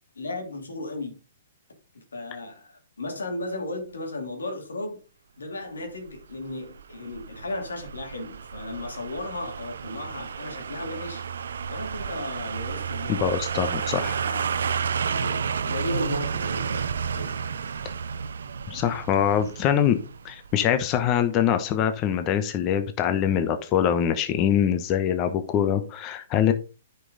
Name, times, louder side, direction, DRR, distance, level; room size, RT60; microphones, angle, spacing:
voice 1, 0.1-1.2 1.9-5.0 5.4-11.2 11.7-13.9 14.2-14.4 15.0-17.3, left 2 dB, 90° left, 2.9 m, -35 dB
sound 1, 6.1-21.0 21.3-21.4, right 6 dB, 75° right, 0.6 m, -31 dB
voice 2, 13.1-14.2 18.7-20.0 20.2-26.5, left 9 dB, 30° left, 0.9 m, -23 dB
9.8 x 5.5 x 3.9 m
hypercardioid pair, 135°, 0 cm